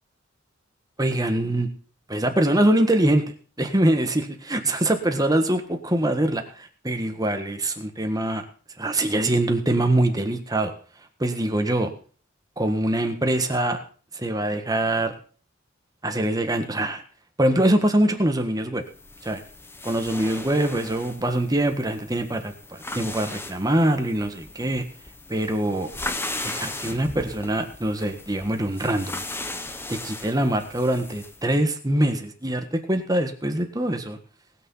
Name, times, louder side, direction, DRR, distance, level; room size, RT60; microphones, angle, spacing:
voice 1, 1.0-1.7 2.1-8.4 8.8-10.7 11.2-11.9 12.6-13.8 14.1-15.1 16.0-17.0 17.4-18.8 19.2-19.4 19.8-24.8 25.3-25.9 26.4-29.2 29.9-34.2, right 1 dB, 20° right, 5 dB, 1.5 m, -23 dB
sound 1, 18.9-31.4, left 2 dB, 10° left, 0.9 m, -37 dB
19.0 x 6.6 x 5.6 m, 0.41 s
head